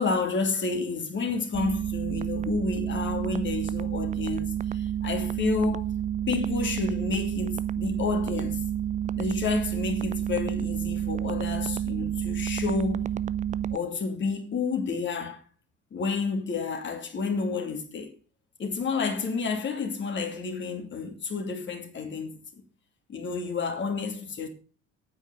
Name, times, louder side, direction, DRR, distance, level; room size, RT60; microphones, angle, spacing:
voice 1, 0.0-5.9 6.3-8.6 9.2-13.0 13.7-15.4 15.9-18.1 18.6-22.4 23.1-24.5, left 4 dB, 35° left, 2.9 m, -30 dB
sound 1, 1.5-13.8, right 10 dB, 20° right, 0.5 m, -30 dB
9.3 x 8.6 x 7.1 m
figure-of-eight pair, 60°, 34 cm